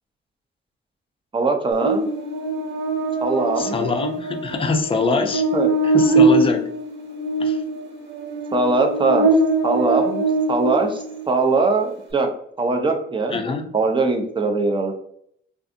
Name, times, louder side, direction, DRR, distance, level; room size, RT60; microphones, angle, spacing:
voice 1, 1.3-2.1 3.2-3.9 5.5-5.7 8.5-9.3 9.6-12.3 12.6-13.4 13.7-14.9, right 3 dB, 25° right, 3 dB, 0.5 m, -21 dB
Buzz, 1.8-11.3, right 2 dB, 65° right, 0.7 m, -22 dB
voice 2, 3.6-5.4 5.8-6.7 7.4-7.6 13.3-13.8, left 4 dB, 25° left, 5 dB, 0.4 m, -24 dB
2.5 x 2.5 x 2.5 m, 0.67 s
cardioid pair, 90°, 20 cm